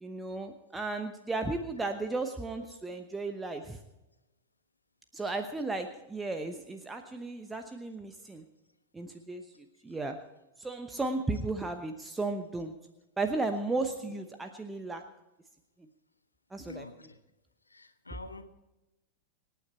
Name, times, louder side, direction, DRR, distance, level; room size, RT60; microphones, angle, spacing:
voice 1, 0.0-3.8 5.1-8.4 8.9-9.4 9.8-10.2 10.6-12.7 13.2-15.0 16.5-16.9, right 3 dB, 10° right, 6 dB, 1.0 m, -34 dB
voice 2, 16.6-17.2 17.7-18.4, left 2 dB, 80° left, 9 dB, 1.2 m, -46 dB
26.0 x 9.2 x 4.4 m, 1.0 s
figure-of-eight pair, 90°, 0 cm